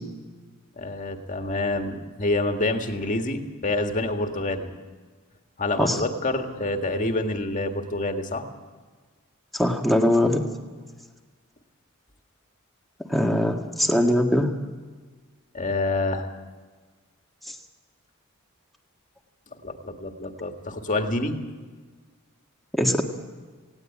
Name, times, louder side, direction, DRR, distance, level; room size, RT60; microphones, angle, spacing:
voice 1, 0.8-4.7 5.6-8.5 15.5-16.3 19.6-21.3, left 2 dB, 35° left, 5 dB, 1.9 m, -27 dB
voice 2, 9.5-10.4 13.1-14.5 22.7-23.0, left 1 dB, ahead, 2 dB, 1.9 m, -21 dB
19.0 x 17.5 x 8.7 m, 1.4 s
head